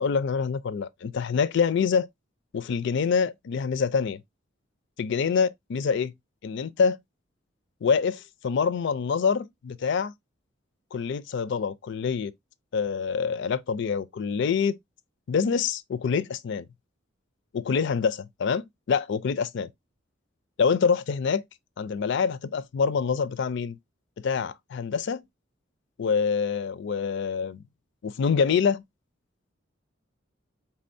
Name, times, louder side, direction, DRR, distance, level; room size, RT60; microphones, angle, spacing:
voice 1, 0.0-2.1 2.5-4.2 5.0-6.1 6.4-7.0 7.8-10.1 10.9-12.3 12.7-14.8 15.3-16.7 17.5-19.7 20.6-21.4 21.8-23.8 24.2-25.2 26.0-27.6 28.0-28.8, left 6 dB, 65° left, 0.4 m, -26 dB
4.4 x 3.6 x 2.6 m
head